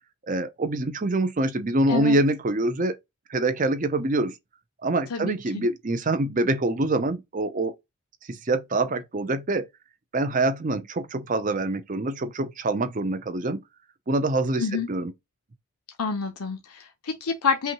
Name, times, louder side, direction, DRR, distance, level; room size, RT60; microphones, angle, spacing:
voice 1, 0.3-3.0 3.3-4.3 4.8-7.7 8.3-9.7 10.1-13.6 14.1-15.1, right 2 dB, 35° right, 0.5 m, -25 dB
voice 2, 5.1-5.7 14.6-14.9 16.0-17.7, left 5 dB, 90° left, 0.7 m, -28 dB
5.6 x 2.3 x 2.9 m
head